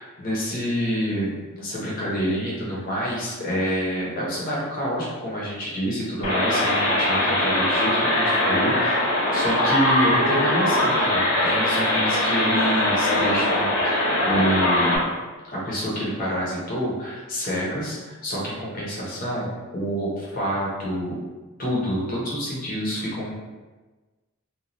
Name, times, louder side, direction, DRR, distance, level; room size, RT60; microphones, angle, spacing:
voice 1, 0.0-15.1 15.5-21.2 21.6-23.3, equal, 40° left, -6 dB, 0.8 m, -27 dB
sound 1, 6.2-15.0, left 1 dB, 80° left, 0.8 m, -21 dB
3.0 x 2.3 x 2.5 m, 1.3 s
head